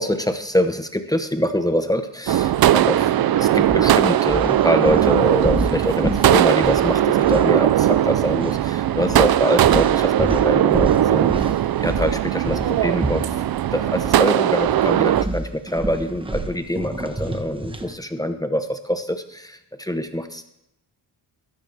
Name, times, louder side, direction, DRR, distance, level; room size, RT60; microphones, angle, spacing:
voice 1, 0.0-13.4 13.7-20.4, equal, 10° left, 7 dB, 0.9 m, -24 dB
sound 1, 2.3-15.2, right 12 dB, 60° right, 0.5 m, -19 dB
sound 2, 3.0-3.2 3.6-8.1 8.3-8.6 9.1-14.2 14.5-18.0, right 1 dB, 10° right, 1.1 m, -29 dB
14.5 x 13.5 x 3.4 m, 0.80 s
wide cardioid pair, 100°, 42 cm